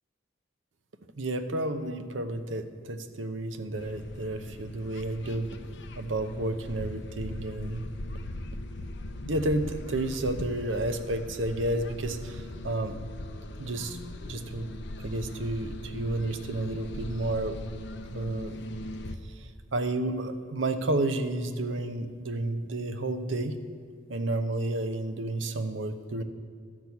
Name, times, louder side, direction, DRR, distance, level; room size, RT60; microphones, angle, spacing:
voice 1, 1.2-5.5 6.0-7.8 9.2-13.0 13.6-14.0 14.3-17.6 18.1-18.6 19.3-23.6 24.1-26.2, right 2 dB, 85° right, 8 dB, 0.8 m, -31 dB
sound 1, 3.8-19.2, left 1 dB, 65° left, 0.7 m, -40 dB
12.5 x 6.1 x 8.3 m, 2.1 s
head